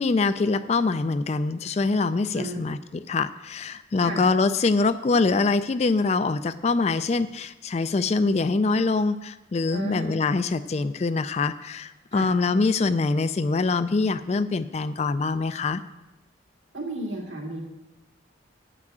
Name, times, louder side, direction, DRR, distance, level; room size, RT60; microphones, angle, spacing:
voice 1, 0.0-15.8, left 3 dB, 35° left, 13 dB, 0.3 m, -24 dB
voice 2, 9.7-10.2 12.1-12.3 16.7-17.6, right 1 dB, 75° right, 0 dB, 2.2 m, -33 dB
9.0 x 6.0 x 7.5 m, 1.0 s
head